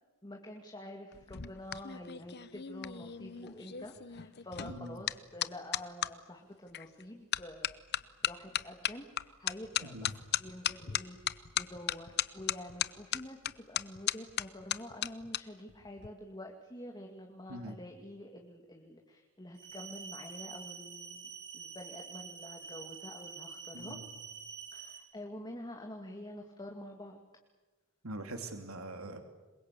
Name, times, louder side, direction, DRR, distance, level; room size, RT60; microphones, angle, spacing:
voice 1, 0.2-7.8 8.2-24.0 24.7-27.2, left 1 dB, 20° left, 2 dB, 2.3 m, -47 dB
sound 1, 1.1-6.1 6.7-7.0 7.3-15.4 15.7-16.1, left 11 dB, 50° left, 0.8 m, -36 dB
sound 2, 19.5-25.0, right 6 dB, 55° right, 4.6 m, -47 dB
voice 2, 23.7-24.1 28.0-29.2, right 1 dB, 85° right, 6 dB, 2.8 m, -43 dB
27.0 x 22.5 x 8.4 m, 1.2 s
head